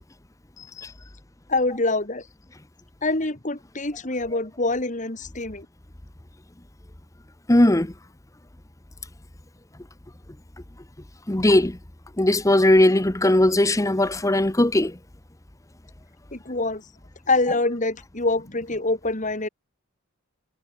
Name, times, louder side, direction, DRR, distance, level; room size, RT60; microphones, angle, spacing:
voice 1, 0.6-0.9 1.5-2.3 3.0-5.7 16.3-16.8 17.3-19.5, left 2 dB, 35° left, 2.5 m, -25 dB
voice 2, 7.5-7.9 11.3-11.8 12.2-15.0, left 1 dB, 15° left, 0.9 m, -18 dB
head